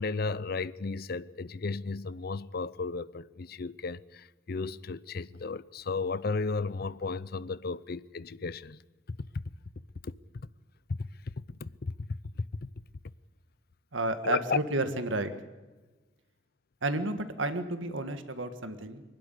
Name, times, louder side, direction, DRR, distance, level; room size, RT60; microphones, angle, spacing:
voice 1, 0.0-8.8 9.1-9.2 10.0-10.5 10.9-11.0 11.3-12.5 14.2-14.6, left 4 dB, 50° left, 0.5 m, -34 dB
voice 2, 13.9-15.3 16.8-19.0, right 2 dB, 75° right, 1.7 m, -31 dB
24.0 x 12.0 x 10.0 m
head